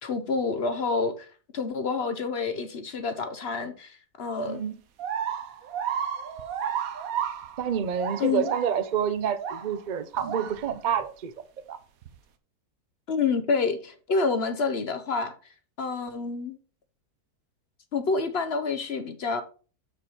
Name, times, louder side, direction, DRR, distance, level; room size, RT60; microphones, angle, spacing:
voice 1, 0.0-1.3 1.5-4.6 8.2-8.5 13.1-15.3 15.8-16.6 17.9-19.4, left 4 dB, 50° left, 0.8 m, -28 dB
voice 2, 4.4-4.8 7.6-11.8, right 8 dB, 50° right, 0.5 m, -28 dB
sound 1, 5.0-9.8 10.1-11.0 12.0-12.2, right 8 dB, 70° right, 1.2 m, -32 dB
7.0 x 6.3 x 4.2 m
omnidirectional pair, 1.6 m